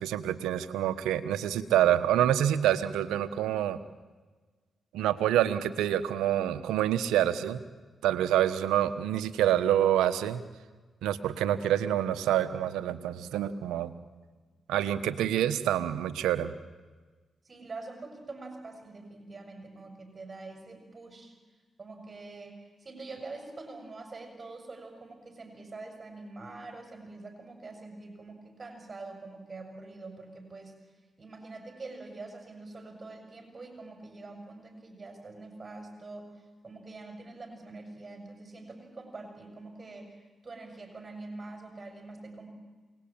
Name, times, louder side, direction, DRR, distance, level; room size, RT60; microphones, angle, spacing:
voice 1, 0.0-3.8 4.9-7.6 8.0-10.4 11.0-13.9 14.7-16.5, right 11 dB, 90° right, 12 dB, 1.1 m, -27 dB
voice 2, 17.4-21.3 21.8-30.7 31.2-42.5, right 3 dB, 40° right, 4 dB, 6.9 m, -45 dB
28.0 x 20.0 x 8.8 m, 1.3 s
supercardioid pair, 50°, 0 cm